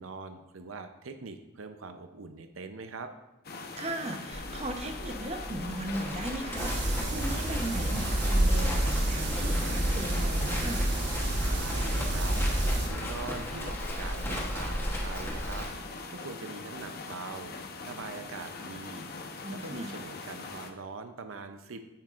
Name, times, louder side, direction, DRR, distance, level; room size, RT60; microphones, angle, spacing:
voice 1, 0.0-3.1 11.5-15.7 16.1-17.6 17.8-19.0 19.5-21.8, right 4 dB, 80° right, 8 dB, 0.6 m, -42 dB
sound 1, 3.4-20.7, left 3 dB, 50° left, 0.8 m, -42 dB
voice 2, 3.8-10.9 19.4-19.9, right 1 dB, 30° right, 4 dB, 0.8 m, -37 dB
Livestock farm animals working animals, 4.3-15.7, equal, 10° left, 1.0 m, -37 dB
sound 2, 6.6-12.9, right 1 dB, 55° right, 1.4 m, -28 dB
9.5 x 9.0 x 2.5 m, 1.0 s
head